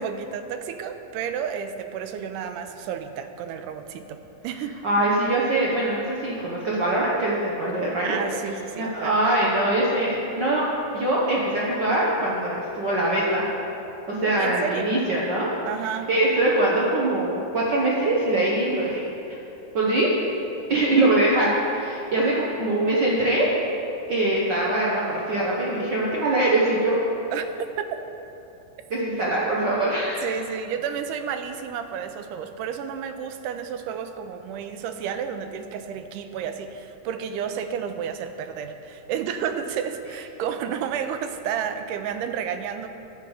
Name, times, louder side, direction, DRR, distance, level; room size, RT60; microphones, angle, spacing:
voice 1, 0.0-4.8 8.0-9.2 14.4-15.0 15.7-16.1 20.0-20.1 27.3-27.5 27.8-27.9 30.2-42.9, right 8 dB, 85° right, 8 dB, 2.2 m, -31 dB
voice 2, 4.8-8.2 8.8-10.7 10.9-13.5 14.1-15.5 16.1-19.0 19.7-20.1 20.7-23.5 24.1-27.0 28.9-30.2, right 1 dB, 70° right, -6 dB, 1.0 m, -23 dB
11.0 x 8.0 x 4.9 m, 3.0 s
omnidirectional pair, 3.6 m